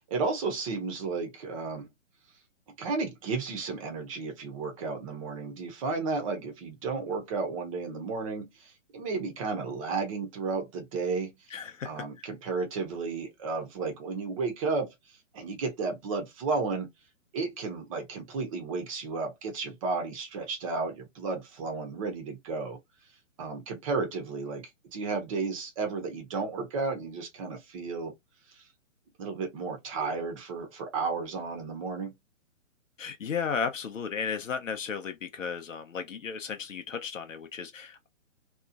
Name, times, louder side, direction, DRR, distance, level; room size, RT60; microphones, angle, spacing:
voice 1, 0.1-1.9 2.8-11.3 11.8-14.9 15.3-16.9 17.3-22.8 23.4-28.1 29.2-32.1, right 4 dB, 25° right, 0.8 m, -33 dB
voice 2, 11.5-12.3 33.0-38.1, left 6 dB, 75° left, 0.6 m, -34 dB
2.9 x 2.4 x 2.4 m
figure-of-eight pair, 130°, 39 cm